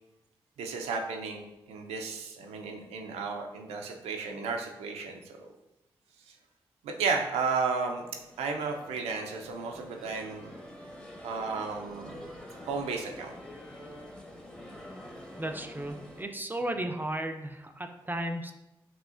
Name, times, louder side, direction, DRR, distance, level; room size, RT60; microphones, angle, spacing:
voice 1, 0.6-5.5 6.3-6.4 6.8-8.1 8.4-10.5 11.2-12.3 12.6-13.3, right 4 dB, 90° right, 2 dB, 0.4 m, -33 dB
sound 1, 8.0-16.2, left 1 dB, 10° left, 0.8 m, -47 dB
voice 2, 15.4-18.5, right 1 dB, 20° right, 5 dB, 0.4 m, -34 dB
4.8 x 2.7 x 2.4 m, 0.92 s
supercardioid pair, 40°, 10 cm